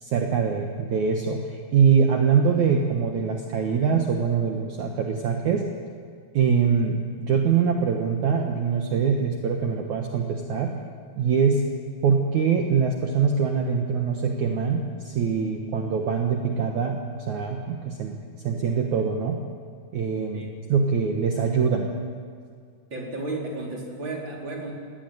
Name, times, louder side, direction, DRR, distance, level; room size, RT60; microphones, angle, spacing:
voice 1, 0.0-5.7 6.3-10.7 11.2-11.7 12.0-17.0 17.3-18.2 18.4-19.4 19.9-20.4 20.7-21.9, right 6 dB, 60° right, 2 dB, 2.4 m, -23 dB
voice 2, 22.9-24.7, right 2 dB, 30° right, -2 dB, 4.6 m, -33 dB
21.0 x 18.0 x 9.4 m, 2.2 s
omnidirectional pair, 4.3 m